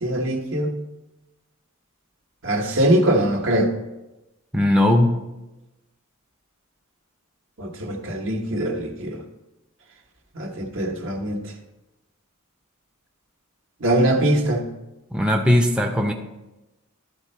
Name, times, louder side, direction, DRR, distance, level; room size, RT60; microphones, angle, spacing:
voice 1, 0.0-0.7 2.4-3.7 7.6-9.2 10.3-11.4 13.8-14.6, right 1 dB, 60° right, 2 dB, 1.2 m, -22 dB
voice 2, 4.5-5.2 15.1-16.1, left 1 dB, 5° right, 1 dB, 0.6 m, -18 dB
12.5 x 4.3 x 4.4 m, 1.0 s
head